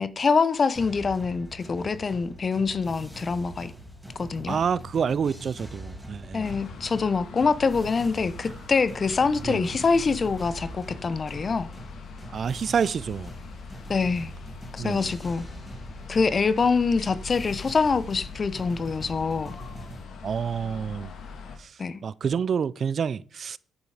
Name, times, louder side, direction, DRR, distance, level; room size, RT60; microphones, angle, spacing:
voice 1, 0.0-3.7 4.2-4.6 6.3-11.7 13.9-14.3 14.7-15.4 16.1-19.5 21.8-22.0, left 4 dB, 40° left, 1.0 m, -25 dB
sound 1, 0.7-20.0, right 1 dB, ahead, 4.5 m, -43 dB
voice 2, 4.5-6.6 9.4-9.7 12.3-13.3 14.8-15.1 20.2-21.1 21.6-23.6, right 7 dB, 50° right, 0.6 m, -28 dB
sound 2, 6.4-21.6, left 5 dB, 75° left, 2.9 m, -43 dB
10.0 x 10.0 x 5.0 m
cardioid pair, 90°, 0 cm